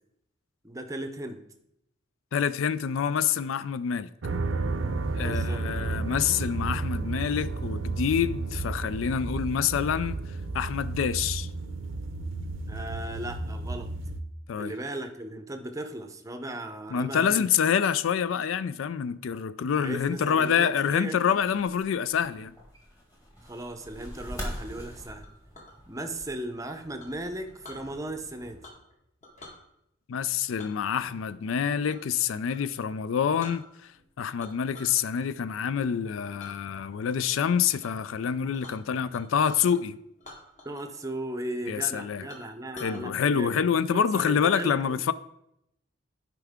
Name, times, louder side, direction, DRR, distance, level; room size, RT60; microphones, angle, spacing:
voice 1, 0.6-1.4 5.1-5.7 12.7-13.9 14.6-17.5 19.7-21.4 23.4-25.3 25.9-28.6 40.6-43.6 43.9-45.0, right 1 dB, 15° right, 0.6 m, -37 dB
voice 2, 2.3-4.1 5.1-10.2 10.5-11.5 14.5-14.7 16.9-22.5 30.1-33.6 34.2-40.0 41.7-42.2 42.7-45.1, left 7 dB, 85° left, 0.4 m, -27 dB
sound 1, 4.2-14.2, right 3 dB, 80° right, 0.6 m, -32 dB
sound 2, 21.3-28.7, equal, 15° left, 1.8 m, -44 dB
Chink clink, 25.2-25.8 27.0-27.8 28.6-28.9 29.2-29.6 30.6-32.1 32.4-32.6 33.1-33.2 33.4-34.0 34.4-35.0 35.4-35.8 36.4-36.5 37.0-37.4 37.8-37.9 38.2-39.8 40.2-41.0 41.2-41.3 41.8-41.9 42.3-43.0, left 1 dB, 35° left, 1.6 m, -48 dB
11.5 x 4.7 x 3.6 m
head